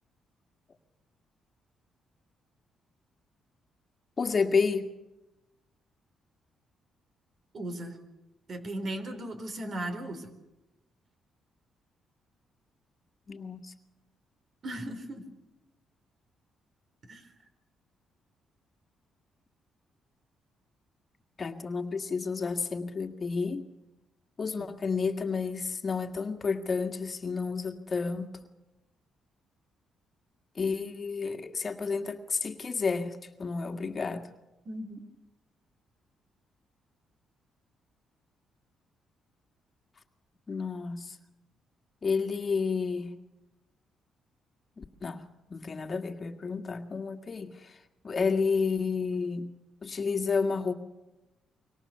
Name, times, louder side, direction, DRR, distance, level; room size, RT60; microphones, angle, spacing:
voice 1, 4.2-4.9 13.3-13.7 21.4-23.6 24.4-28.3 30.6-34.3 40.5-41.1 42.0-43.1 44.8-45.2 45.5-47.5 48.0-49.5 49.8-50.7, left 5 dB, 40° left, 5 dB, 2.0 m, -30 dB
voice 2, 7.5-8.0 8.5-10.3 14.6-15.2 17.0-17.3 24.6-24.7 34.7-35.0, right 1 dB, 50° right, 8 dB, 4.3 m, -37 dB
26.0 x 24.0 x 6.9 m, 1.0 s
cardioid pair, 80°, 0 cm